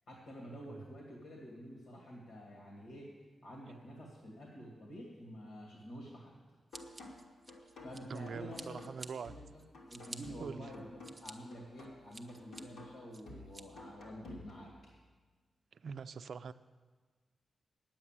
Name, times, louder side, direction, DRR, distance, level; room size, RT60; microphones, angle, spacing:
voice 1, 0.1-3.2 3.4-6.4 7.8-8.8 9.2-14.9, equal, 75° left, -2 dB, 2.2 m, -49 dB
sound 1, 6.7-14.7, left 1 dB, 90° left, 2.7 m, -53 dB
Scissors, 6.7-8.2 8.5-9.1 9.6-10.2 10.7-11.3 11.8-12.6 13.1-13.6, right 2 dB, 20° right, 0.7 m, -50 dB
voice 2, 8.1-9.3 10.4-10.6 15.8-16.5, right 6 dB, 60° right, 12 dB, 0.4 m, -43 dB
9.7 x 8.6 x 7.4 m, 1.4 s
wide cardioid pair, 135°, 0 cm